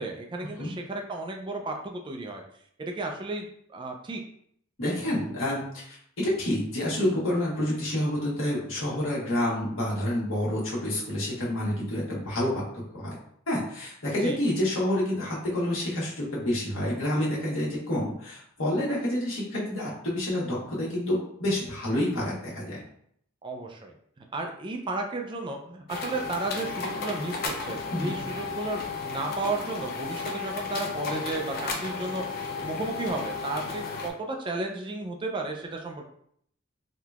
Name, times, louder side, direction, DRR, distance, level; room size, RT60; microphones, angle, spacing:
voice 1, 0.0-2.4 2.8-4.2 14.2-14.4 23.4-36.1, right 2 dB, 25° right, 2 dB, 0.4 m, -33 dB
voice 2, 4.8-12.6 12.9-13.1 13.5-22.8 27.9-28.2, left 1 dB, 85° left, -5 dB, 1.3 m, -28 dB
sound 1, 25.9-34.1, left 4 dB, 50° left, 0.5 m, -34 dB
3.6 x 2.8 x 2.4 m, 0.67 s
head